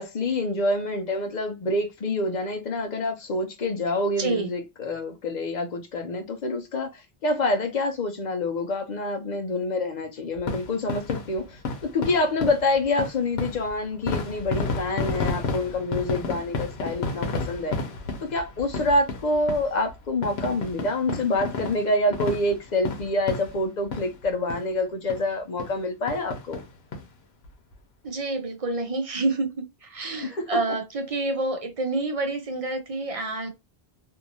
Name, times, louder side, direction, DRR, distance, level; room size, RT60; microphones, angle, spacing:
voice 1, 0.0-17.8 18.2-26.6 30.1-30.5, left 2 dB, 50° left, 0.7 m, -27 dB
voice 2, 4.2-4.5 28.0-33.5, right 2 dB, 40° right, 0.6 m, -28 dB
sound 1, 10.4-24.2 24.5-24.7 25.1-25.2 25.6-25.8 26.1-27.0 27.4-27.5 27.7-27.8, left 3 dB, 80° left, 1.0 m, -32 dB
2.6 x 2.4 x 2.7 m
omnidirectional pair, 1.1 m